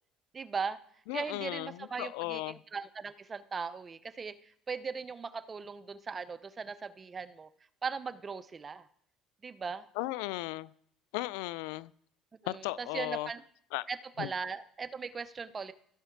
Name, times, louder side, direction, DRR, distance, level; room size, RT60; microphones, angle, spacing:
voice 1, 0.3-0.8 1.1-7.5 7.8-8.9 9.4-9.8 12.4-13.4 13.9-15.7, right 5 dB, 25° right, 0.6 m, -39 dB
voice 2, 1.1-2.6 10.0-10.7 11.1-11.9 12.4-13.3 13.7-13.9 14.2-14.3, left 19 dB, 90° left, 0.3 m, -36 dB
15.5 x 5.6 x 4.6 m
cardioid pair, 115°, 0 cm